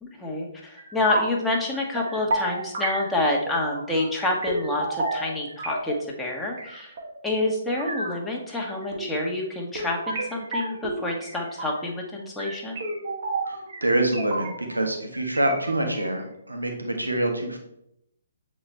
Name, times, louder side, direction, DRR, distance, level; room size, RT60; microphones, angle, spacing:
voice 1, 0.0-6.9 7.2-12.8, left 2 dB, 5° left, -2 dB, 1.2 m, -28 dB
sound 1, 0.8-1.4 1.7-6.1 6.5-8.2 8.5-9.2 9.8-11.9 12.4-14.8 15.1-16.1, right 2 dB, 45° right, 1.4 m, -32 dB
voice 2, 13.8-17.6, right 1 dB, 85° right, 3 dB, 1.5 m, -25 dB
7.9 x 4.2 x 3.3 m, 0.77 s
figure-of-eight pair, 130°, 0 cm